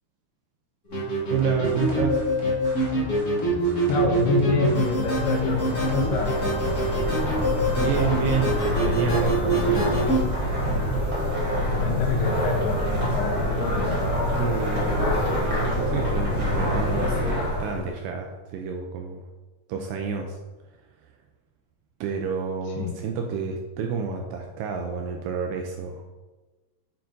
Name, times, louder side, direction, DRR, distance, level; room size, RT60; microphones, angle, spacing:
sound 1, 0.9-10.2, right 1 dB, 35° left, 1.4 m, -25 dB
voice 1, 1.3-2.2 7.8-10.2 14.3-19.2 19.7-20.4 22.0-26.1, right 6 dB, 80° right, 3 dB, 2.5 m, -29 dB
sound 2, 1.4-8.2, right 1 dB, 55° right, 3.5 m, -38 dB
voice 2, 3.9-6.3 6.6-6.9 11.8-14.0 22.8-22.9, left 3 dB, 80° left, 1 dB, 3.5 m, -26 dB
sound 3, 4.5-17.9, left 1 dB, 35° right, 2.7 m, -26 dB
7.7 x 7.0 x 3.8 m, 1.2 s
omnidirectional pair, 5.3 m